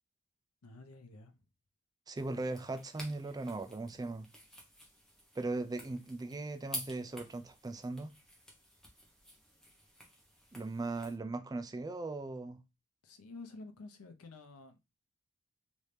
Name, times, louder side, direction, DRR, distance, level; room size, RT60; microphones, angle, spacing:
voice 1, 0.6-1.4 13.0-14.8, left 3 dB, 85° left, 0.7 m, -50 dB
voice 2, 2.1-4.3 5.3-8.1 10.5-12.6, right 2 dB, 15° right, 0.3 m, -38 dB
sound 1, 2.2-11.2, equal, ahead, 0.8 m, -50 dB
3.1 x 2.7 x 3.3 m
head